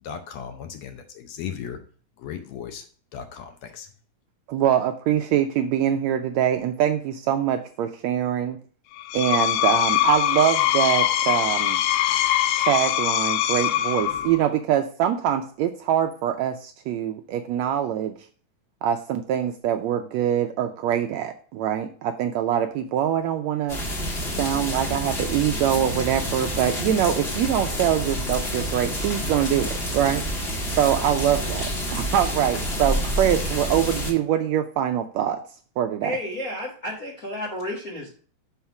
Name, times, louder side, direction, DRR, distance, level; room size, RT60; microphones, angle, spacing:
voice 1, 0.0-1.8 2.2-2.9 3.1-3.9, left 8 dB, 70° left, 7 dB, 1.8 m, -36 dB
voice 2, 4.5-8.6 9.1-11.8 12.6-18.1 18.8-23.8 24.4-30.2 30.8-35.4 35.8-36.2, right 10 dB, 80° right, 7 dB, 1.6 m, -24 dB
Screech, 9.0-14.5, left 12 dB, 90° left, 2.1 m, -22 dB
sound 1, 23.7-34.1, equal, 35° left, 1.1 m, -28 dB
voice 3, 36.0-38.1, left 1 dB, 55° left, -2 dB, 1.0 m, -31 dB
5.7 x 5.5 x 5.8 m, 0.43 s
omnidirectional pair, 3.6 m